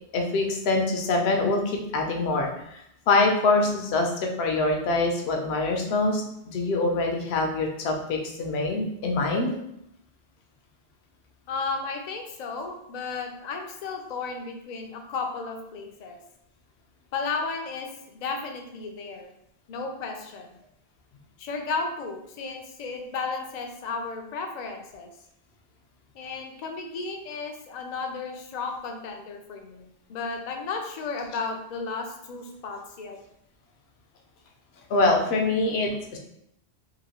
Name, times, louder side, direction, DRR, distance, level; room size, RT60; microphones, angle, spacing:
voice 1, 0.1-2.8 3.1-4.1 4.4-9.6 34.9-36.2, left 2 dB, 75° left, 2 dB, 0.8 m, -24 dB
voice 2, 11.5-16.2 17.1-19.3 19.7-20.6 21.4-25.1 26.1-33.2, left 4 dB, 55° left, 3 dB, 0.5 m, -34 dB
2.9 x 2.6 x 2.8 m, 0.78 s
omnidirectional pair, 1.1 m